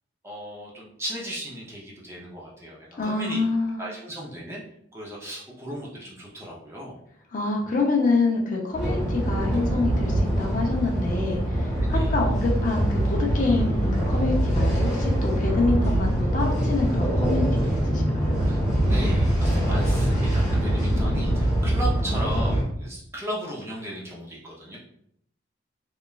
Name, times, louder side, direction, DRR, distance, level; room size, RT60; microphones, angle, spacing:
voice 1, 0.2-3.4 3.8-4.6 4.9-7.0 11.8-12.1 18.4-18.6 18.9-24.8, equal, 15° right, -4 dB, 0.4 m, -36 dB
voice 2, 3.0-3.8 7.3-18.3, left 3 dB, 40° left, 0 dB, 0.4 m, -26 dB
sound 1, 8.7-22.6, right 1 dB, 5° left, 1.0 m, -23 dB
3.0 x 2.2 x 2.3 m, 0.70 s
head